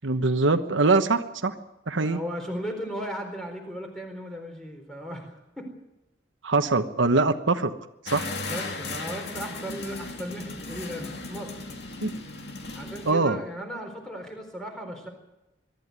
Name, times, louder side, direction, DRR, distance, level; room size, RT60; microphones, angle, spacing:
voice 1, 0.0-1.5 1.9-2.2 6.4-7.7 8.0-8.3 12.0-12.2 13.1-13.4, right 3 dB, 85° right, 8 dB, 1.2 m, -23 dB
voice 2, 1.9-5.7 8.4-11.5 12.7-15.1, equal, 5° left, 3 dB, 4.1 m, -36 dB
sound 1, 8.1-13.1, left 3 dB, 60° left, 2.6 m, -36 dB
23.0 x 13.0 x 9.6 m, 0.94 s
head